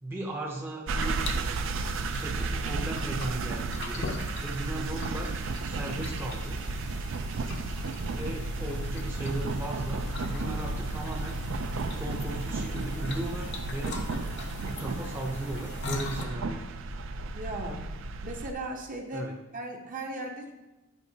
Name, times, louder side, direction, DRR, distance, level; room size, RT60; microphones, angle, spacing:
voice 1, 0.0-1.2 2.2-4.1 4.4-6.6 8.1-11.5 12.0-14.0 14.6-16.6 19.1-19.3, right 1 dB, 10° right, -2 dB, 0.6 m, -37 dB
sound 1, 0.9-18.5, right 3 dB, 60° right, 0.4 m, -33 dB
sound 2, 1.0-16.3, left 3 dB, 55° left, 0.7 m, -42 dB
voice 2, 17.3-17.8 18.2-19.3 19.5-20.5, right 2 dB, 40° right, 2 dB, 0.8 m, -37 dB
8.2 x 5.2 x 2.8 m, 1.1 s
head